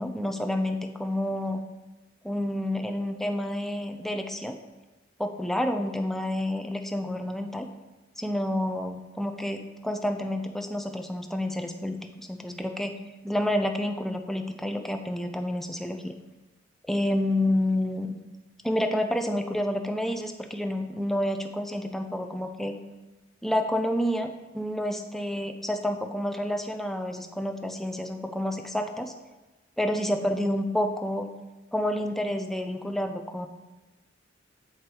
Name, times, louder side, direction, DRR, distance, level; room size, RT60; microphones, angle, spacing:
voice 1, 0.0-1.6 2.2-4.6 5.2-7.7 8.2-12.9 13.2-16.1 16.9-18.1 18.6-22.7 23.4-24.3 24.5-29.1 29.8-31.3 31.7-33.5, left 1 dB, ahead, 5 dB, 0.5 m, -29 dB
7.8 x 5.0 x 4.4 m, 1.2 s
head